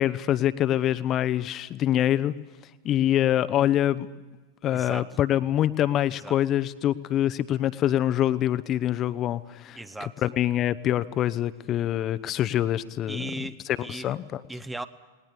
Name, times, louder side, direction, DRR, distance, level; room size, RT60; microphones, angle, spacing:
voice 1, 0.0-2.3 2.8-4.1 4.6-9.8 10.2-14.4, left 12 dB, 30° left, 14 dB, 0.8 m, -25 dB
voice 2, 4.7-5.1 6.2-6.4 9.8-10.1 13.1-14.2 14.5-14.9, right 2 dB, 5° right, 13 dB, 0.9 m, -37 dB
19.5 x 19.5 x 9.8 m, 1.2 s
figure-of-eight pair, 90°, 0 cm